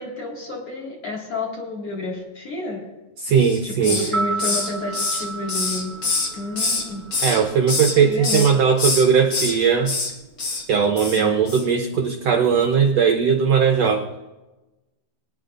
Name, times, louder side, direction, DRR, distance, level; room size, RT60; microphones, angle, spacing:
voice 1, 0.0-2.9 3.6-6.0 6.3-7.1 7.9-8.5 11.0-11.5, left 2 dB, 45° left, 0 dB, 2.8 m, -30 dB
voice 2, 3.2-4.1 7.2-9.9 10.7-14.1, right 6 dB, 85° right, 4 dB, 1.4 m, -18 dB
Hiss, 3.4-4.1 4.4-6.8 7.1-7.9 8.2-8.5 8.8-9.5 9.8-10.1 10.4-10.6 11.0-11.2 11.5-11.6, left 3 dB, 60° left, 0.8 m, -25 dB
sound 1, 4.0-8.1 8.4-8.5, right 3 dB, 20° right, 0.8 m, -32 dB
24.5 x 9.8 x 2.5 m, 1.1 s
omnidirectional pair, 4.1 m